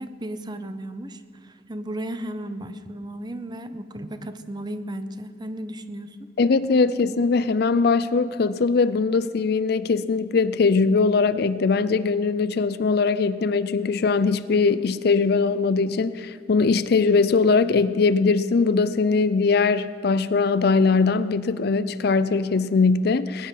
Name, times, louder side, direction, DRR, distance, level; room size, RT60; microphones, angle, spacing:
voice 1, 0.0-6.2, right 1 dB, 25° right, 11 dB, 0.7 m, -34 dB
voice 2, 6.4-23.5, left 4 dB, 60° left, 14 dB, 0.5 m, -21 dB
20.0 x 10.5 x 5.7 m, 2.2 s
head